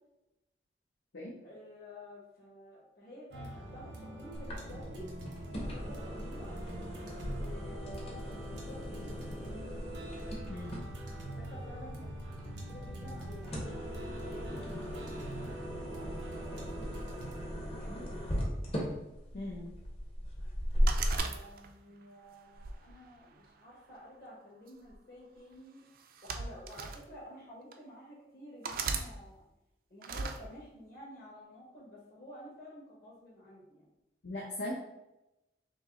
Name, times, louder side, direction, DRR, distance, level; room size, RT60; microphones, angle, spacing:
voice 1, 1.4-5.1 5.4-6.5 7.4-9.5 11.1-12.1 12.5-16.7 17.7-18.4 21.1-25.9 26.2-29.4 29.9-33.9, left 1 dB, 55° left, -5 dB, 1.4 m, -51 dB
sound 1, 3.3-18.6, right 1 dB, 90° right, 1.0 m, -45 dB
sound 2, 4.3-21.2, equal, 30° left, 0.8 m, -38 dB
voice 2, 19.3-19.7 34.2-34.7, left 1 dB, 75° left, -4 dB, 0.7 m, -39 dB
sound 3, 20.9-21.9 22.5-23.7 24.7-24.9 26.0-27.0 27.7-27.8 28.6-29.1 30.0-30.4, right 5 dB, 50° right, 0.4 m, -37 dB
5.4 x 2.1 x 3.7 m, 0.94 s
head